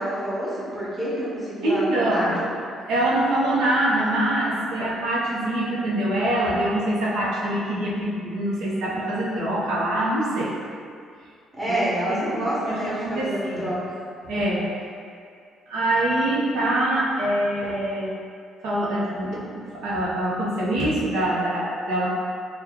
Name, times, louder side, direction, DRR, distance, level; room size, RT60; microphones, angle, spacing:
voice 1, 0.0-2.5 11.5-13.8, right 1 dB, 10° right, -9 dB, 1.0 m, -27 dB
voice 2, 1.6-2.4 2.9-10.5 11.6-11.7 12.1-13.8 14.3-14.7 15.7-18.1 18.6-22.1, right 1 dB, 90° right, -6 dB, 0.7 m, -24 dB
2.9 x 2.2 x 3.6 m, 2.3 s
cardioid pair, 125°, 0 cm